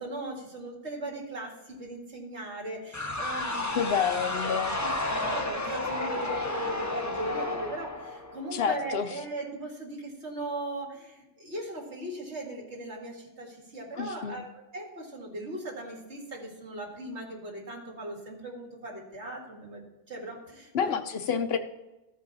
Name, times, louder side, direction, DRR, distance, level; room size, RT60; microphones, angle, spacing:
voice 1, 0.0-3.8 4.4-14.5 14.7-20.9, right 1 dB, 80° right, -1 dB, 2.3 m, -39 dB
sound 1, 2.9-8.7, left 2 dB, 15° left, 0.8 m, -32 dB
voice 2, 3.7-4.8 8.5-9.1 14.0-14.4 20.7-21.6, left 7 dB, 65° left, 8 dB, 0.9 m, -28 dB
14.0 x 5.2 x 4.1 m, 1.0 s
omnidirectional pair, 1.1 m